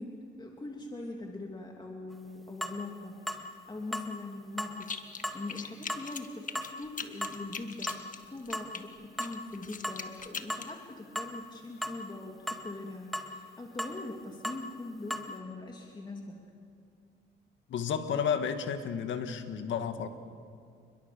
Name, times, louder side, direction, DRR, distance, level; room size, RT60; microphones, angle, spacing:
voice 1, 0.0-7.9 8.3-16.4, left 2 dB, 20° left, 1 dB, 2.8 m, -42 dB
sound 1, 2.1-2.2 2.6-2.8 3.3-3.4 3.9-4.1 4.6-4.8 5.2-5.4 5.9-6.1 6.5-6.7 7.2-7.4 7.9-8.1 8.5-8.7 9.2-9.4 9.8-10.0 10.5-10.7 11.2-11.3 11.8-12.0 12.5-12.6 13.1-13.3 13.8-14.0 14.4-14.6 15.1-15.3, equal, ahead, 2.0 m, -35 dB
sound 2, 4.8-5.2 5.5-8.8 9.2-10.7, left 6 dB, 40° left, 1.7 m, -40 dB
voice 2, 17.7-20.1, left 7 dB, 70° left, 8 dB, 2.0 m, -32 dB
28.5 x 22.5 x 7.0 m, 2.2 s
cardioid pair, 90°, 20 cm